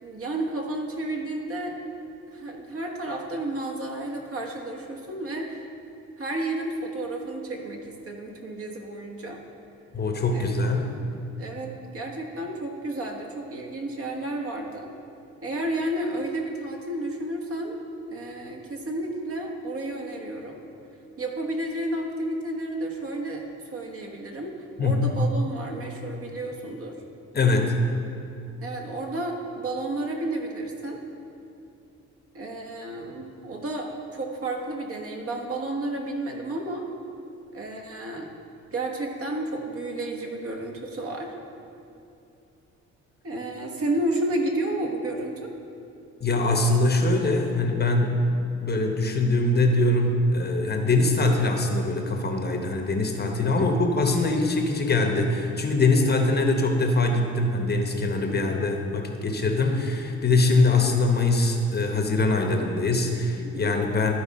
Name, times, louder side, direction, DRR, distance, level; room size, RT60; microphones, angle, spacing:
voice 1, 0.0-1.7 2.3-5.6 6.2-9.4 10.3-10.7 11.4-14.9 15.4-17.8 18.1-20.6 21.2-23.4 23.7-24.5 24.8-27.0 28.6-31.0 32.3-36.8 37.5-38.3 38.7-41.3 43.2-45.5 53.6-53.8 58.3-58.5 63.4-63.7, right 1 dB, 50° right, 1 dB, 1.3 m, -31 dB
voice 2, 9.9-10.9 24.8-25.2 27.3-27.8 46.2-48.2 48.6-64.1, left 2 dB, 35° left, 3 dB, 0.9 m, -23 dB
13.0 x 4.7 x 4.1 m, 2.7 s
cardioid pair, 90°, 30 cm